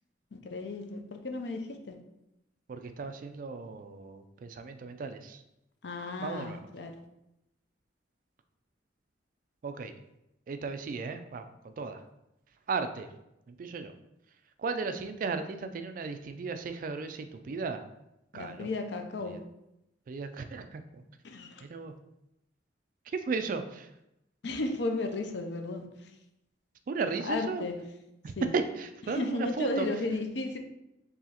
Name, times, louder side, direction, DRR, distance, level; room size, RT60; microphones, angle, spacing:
voice 1, 0.3-1.6 1.9-2.0 5.8-6.9 18.3-19.4 21.2-21.6 24.4-26.1 27.2-27.7 28.4-28.5 29.1-30.6, left 2 dB, 65° left, 5 dB, 0.5 m, -34 dB
voice 2, 2.7-5.4 6.2-6.6 9.6-9.9 10.5-12.0 12.7-13.1 13.5-13.9 14.6-17.8 18.3-18.7 19.2-19.4 20.1-21.0 21.7-21.9 23.1-23.9 26.9-27.6 28.2-29.9, right 4 dB, 45° right, 8 dB, 0.3 m, -35 dB
4.7 x 3.1 x 2.9 m, 0.86 s
head